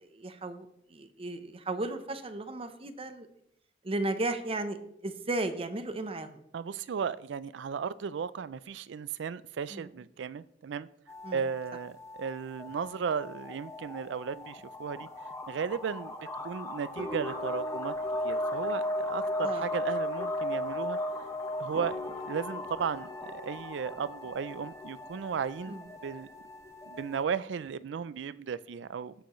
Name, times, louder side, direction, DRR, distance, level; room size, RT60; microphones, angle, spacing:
voice 1, 0.0-3.3 3.8-4.8 5.0-6.4 9.7-9.9 11.2-11.4 19.4-19.7 25.7-25.8, right 2 dB, 30° right, 9 dB, 0.7 m, -35 dB
voice 2, 6.5-10.9 11.3-15.1 15.5-16.1 16.4-17.9 18.2-21.0 21.6-22.0 22.2-26.3 26.9-29.1, right 6 dB, 70° right, 17 dB, 0.4 m, -35 dB
sound 1, 11.1-27.2, left 1 dB, 15° left, 1.1 m, -36 dB
17.0 x 7.0 x 3.1 m, 0.74 s
head